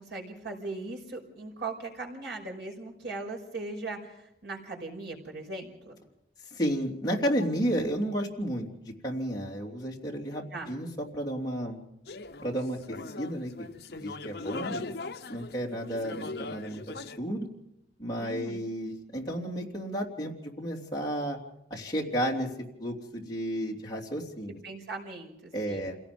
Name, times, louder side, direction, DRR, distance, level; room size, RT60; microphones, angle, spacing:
voice 1, 0.0-6.0 10.5-10.7 18.2-18.7 24.5-25.9, right 3 dB, 80° right, 0 dB, 5.6 m, -39 dB
voice 2, 6.5-11.8 12.4-13.7 14.0-14.9 15.3-17.5 18.0-21.4 21.7-22.5 22.8-24.6 25.5-26.0, equal, 25° left, -3 dB, 3.3 m, -32 dB
sound 1, 12.1-17.2, left 3 dB, 65° left, 0.9 m, -40 dB
28.0 x 17.5 x 5.3 m, 0.84 s
head